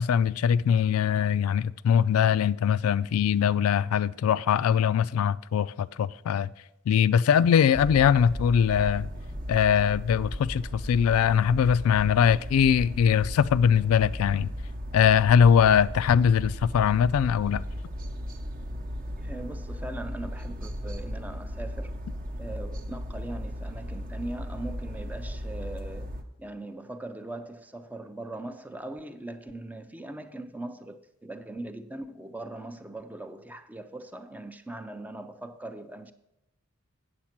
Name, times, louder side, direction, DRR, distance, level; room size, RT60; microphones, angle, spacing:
voice 1, 0.0-6.5 6.9-9.1 9.5-14.5 14.9-17.6, left 8 dB, 80° left, 0.3 m, -22 dB
sound 1, 7.7-26.2, equal, 40° right, 0.7 m, -36 dB
voice 2, 19.2-22.0 22.3-36.1, right 2 dB, 5° right, 0.4 m, -40 dB
8.6 x 7.3 x 5.9 m
head